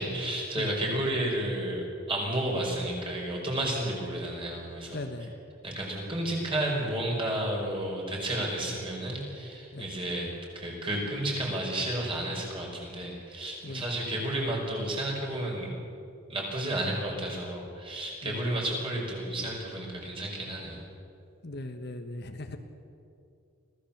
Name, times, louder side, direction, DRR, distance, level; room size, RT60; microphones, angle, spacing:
voice 1, 0.0-5.3 5.6-15.7 16.3-20.8, right 1 dB, 25° right, -1 dB, 5.3 m, -32 dB
voice 2, 4.9-5.3 9.7-9.9 13.6-13.8 18.2-18.5 21.4-22.6, left 2 dB, 50° left, 6 dB, 1.3 m, -38 dB
25.5 x 16.5 x 7.3 m, 2.6 s
head